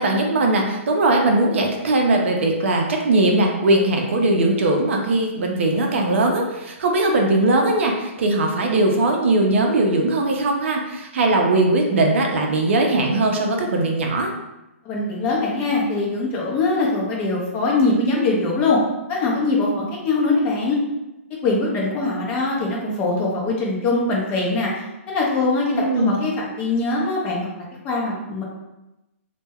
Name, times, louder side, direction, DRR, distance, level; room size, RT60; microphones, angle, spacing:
voice 1, 0.0-14.3 25.7-26.1, right 2 dB, 60° right, 1 dB, 0.5 m, -19 dB
voice 2, 14.8-18.8 19.1-20.8 21.4-28.4, left 3 dB, 20° left, -4 dB, 0.5 m, -22 dB
2.1 x 2.1 x 3.4 m, 0.96 s
hypercardioid pair, 155°, 8 cm